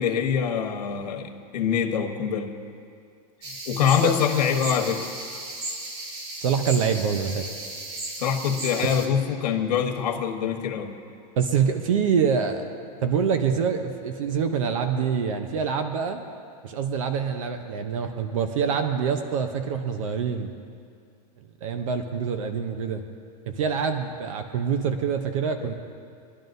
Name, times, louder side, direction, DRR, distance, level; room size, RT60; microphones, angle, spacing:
voice 1, 0.0-2.5 3.7-5.1 8.2-10.9, left 7 dB, 85° left, 3 dB, 1.4 m, -24 dB
sound 1, 3.4-9.1, right 2 dB, 40° right, 1.3 m, -35 dB
voice 2, 6.4-7.5 11.4-12.6 13.0-16.2 16.6-20.5 21.6-23.0 23.5-25.7, right 6 dB, 55° right, 7 dB, 0.7 m, -25 dB
23.0 x 11.0 x 2.6 m, 2.3 s
supercardioid pair, 180°, 20 cm